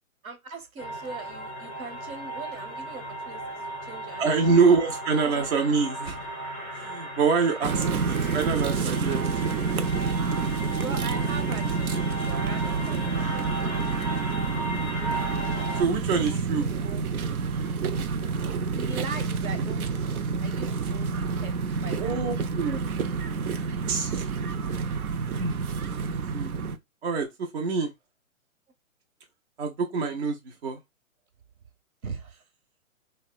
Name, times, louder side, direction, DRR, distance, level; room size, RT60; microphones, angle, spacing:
voice 1, 0.2-4.8 5.2-5.5 10.7-13.7 16.3-17.0 18.6-19.9 20.4-21.5 21.8-22.2 32.0-32.4, right 4 dB, 75° right, 1.1 m, -41 dB
sound 1, 0.8-15.8, right 1 dB, 10° left, 0.4 m, -36 dB
Crow, 2.9-3.0 3.4-3.9 4.3-10.3 11.9-16.3 16.6-17.0 17.3-17.7 18.1-19.1 19.8-20.1 21.2-22.2 22.5-22.7, right 2 dB, 10° right, 0.8 m, -46 dB
voice 2, 4.2-6.2 6.7-9.2 15.7-16.7 22.0-22.9 23.9-24.3 25.4-26.5 27.0-27.9 29.6-30.8, right 5 dB, 50° right, 0.6 m, -26 dB
sound 2, 7.6-26.8, right 5 dB, 90° right, 0.6 m, -28 dB
2.9 x 2.1 x 2.3 m
hypercardioid pair, 140°, 43 cm